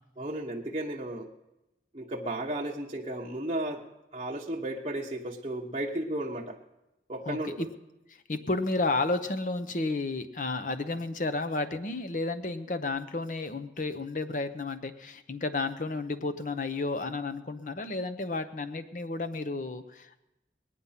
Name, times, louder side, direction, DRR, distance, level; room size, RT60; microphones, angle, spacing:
voice 1, 0.2-1.3 1.9-3.9 4.1-6.6 7.1-7.7, right 1 dB, 30° right, -3 dB, 0.9 m, -34 dB
voice 2, 7.3-7.7 8.3-20.2, left 3 dB, 45° left, 10 dB, 0.8 m, -32 dB
20.0 x 9.5 x 5.7 m, 0.96 s
head